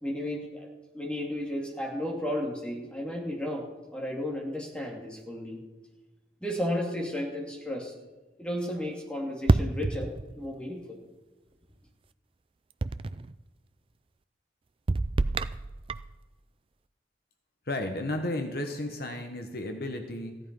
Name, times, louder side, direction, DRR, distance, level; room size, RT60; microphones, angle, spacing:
voice 1, 0.0-0.7 0.9-3.6 3.9-5.6 6.4-7.9 8.4-11.0, left 1 dB, 5° left, -2 dB, 2.6 m, -33 dB
sound 1, 9.5-10.5 12.8-13.3 14.9-16.2, right 2 dB, 30° right, 0.4 m, -27 dB
voice 2, 17.7-20.4, left 1 dB, 55° left, 5 dB, 1.2 m, -33 dB
15.5 x 11.0 x 5.4 m, 1.2 s
head